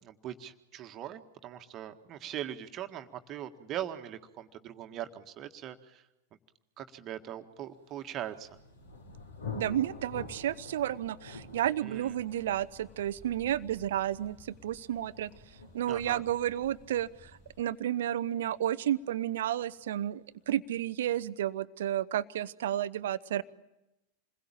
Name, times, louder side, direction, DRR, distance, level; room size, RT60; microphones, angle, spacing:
voice 1, 0.0-6.0 6.8-8.5 11.8-12.1 15.9-16.2, right 11 dB, 35° right, 7 dB, 1.8 m, -41 dB
Thunder, 8.1-19.6, left 3 dB, 70° left, 4.7 m, -48 dB
voice 2, 9.5-15.3 15.7-17.3 17.6-23.4, right 11 dB, 60° right, 17 dB, 0.9 m, -32 dB
sound 1, 11.9-17.6, equal, 10° left, 3.4 m, -58 dB
28.0 x 21.5 x 8.9 m, 0.93 s
figure-of-eight pair, 90°, 0 cm